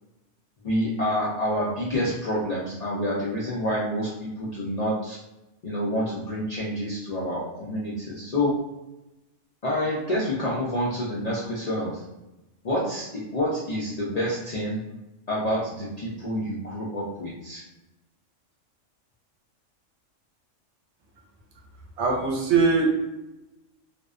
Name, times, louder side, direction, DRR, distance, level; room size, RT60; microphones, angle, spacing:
voice 1, 0.6-5.2 5.6-8.6 9.6-12.0 12.6-14.8 15.3-17.6, equal, 60° left, -7 dB, 0.4 m, -28 dB
voice 2, 22.0-22.9, right 4 dB, 70° right, 0 dB, 0.8 m, -21 dB
2.5 x 2.1 x 2.3 m, 0.96 s
omnidirectional pair, 1.3 m